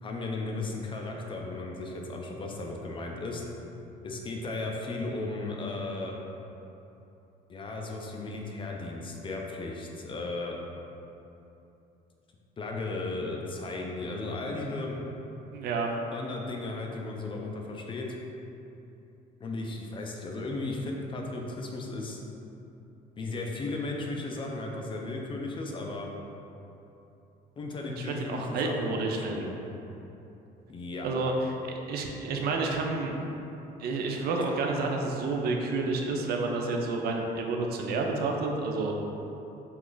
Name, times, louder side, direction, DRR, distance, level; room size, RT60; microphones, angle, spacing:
voice 1, 0.0-3.4 4.0-6.2 7.5-10.6 12.6-15.0 16.1-18.1 19.4-22.2 23.2-26.1 27.6-29.5 30.7-31.1, left 2 dB, 30° left, 0 dB, 0.4 m, -35 dB
voice 2, 15.5-15.9 28.0-29.4 31.0-33.2 33.8-38.9, right 3 dB, 70° right, 1 dB, 0.4 m, -30 dB
2.9 x 2.3 x 3.8 m, 2.9 s
cardioid pair, 110°, 17 cm